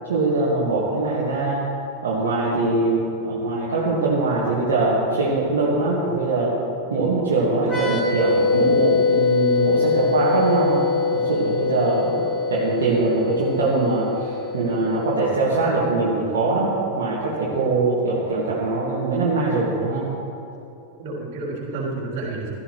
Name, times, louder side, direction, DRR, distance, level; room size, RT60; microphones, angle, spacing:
voice 1, 0.1-1.7 2.0-6.5 6.9-12.1 12.5-20.1, right 3 dB, 60° right, -6 dB, 1.9 m, -22 dB
sound 1, 7.6-15.1, left 5 dB, 15° left, 2.3 m, -23 dB
voice 2, 21.0-22.5, right 2 dB, 45° right, -5 dB, 3.5 m, -30 dB
16.0 x 13.0 x 3.2 m, 2.7 s
figure-of-eight pair, 90°, 0 cm